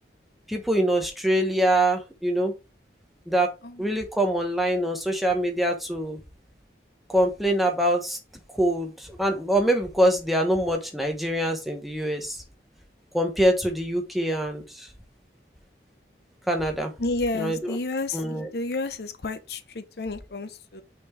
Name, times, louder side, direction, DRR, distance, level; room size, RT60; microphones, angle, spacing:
voice 1, 0.5-2.5 3.3-3.5 3.8-6.2 7.1-8.2 8.5-12.4 13.1-14.9 16.5-16.9 17.3-17.8 18.1-18.5, right 1 dB, ahead, 1.2 m, -24 dB
voice 2, 3.6-4.0 17.0-20.8, left 3 dB, 65° left, 0.7 m, -31 dB
6.0 x 4.4 x 4.5 m
head